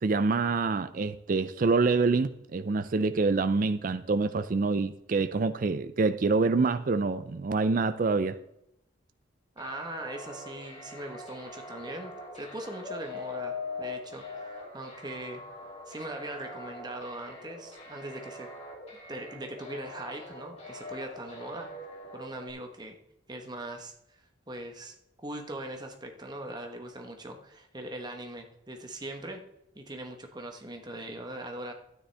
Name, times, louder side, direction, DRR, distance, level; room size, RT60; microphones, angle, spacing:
voice 1, 0.0-8.4, right 4 dB, 45° right, 0.4 m, -26 dB
sound 1, 9.6-22.5, left 3 dB, 30° left, 2.9 m, -43 dB
voice 2, 9.6-15.4 15.9-18.5 19.1-21.7 22.1-23.0 23.3-24.9 25.2-29.4 29.7-31.7, right 1 dB, 20° right, 1.2 m, -40 dB
12.5 x 9.7 x 3.4 m
head